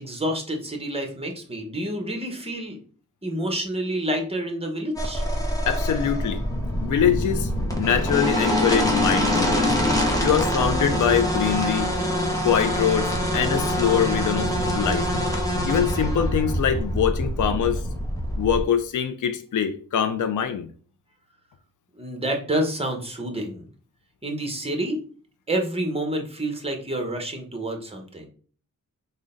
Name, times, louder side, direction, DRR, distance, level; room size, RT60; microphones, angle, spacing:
voice 1, 0.0-2.8 3.2-5.2 22.0-23.6 24.2-25.0 25.5-28.3, right 1 dB, 20° right, 3 dB, 0.9 m, -28 dB
sound 1, 5.0-18.6, equal, 10° left, 0.8 m, -24 dB
voice 2, 5.7-6.4 6.8-7.5 7.8-9.7 10.2-11.9 12.4-15.1 15.7-17.8 18.4-20.7, left 8 dB, 65° left, 8 dB, 0.4 m, -23 dB
3.7 x 2.2 x 3.7 m, 0.42 s
wide cardioid pair, 75°, 32 cm